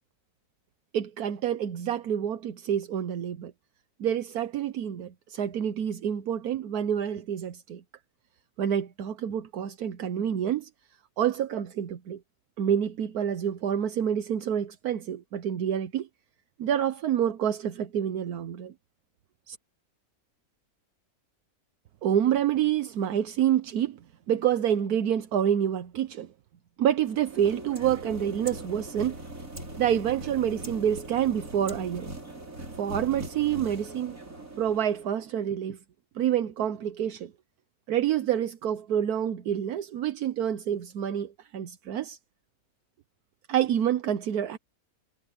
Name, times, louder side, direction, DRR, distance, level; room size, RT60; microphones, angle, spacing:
voice 1, 0.9-3.5 4.0-7.8 8.6-10.7 11.2-12.2 12.6-16.1 16.6-18.7 19.5-19.6 22.0-24.0 24.3-26.3 26.8-29.2 29.8-32.1 32.8-34.2 34.6-35.8 36.1-37.3 37.9-42.2 43.5-44.6, right 9 dB, 80° right, 1.4 m, -27 dB
sound 1, 27.0-35.3, right 1 dB, 60° right, 6.7 m, -40 dB
omnidirectional pair, 1.6 m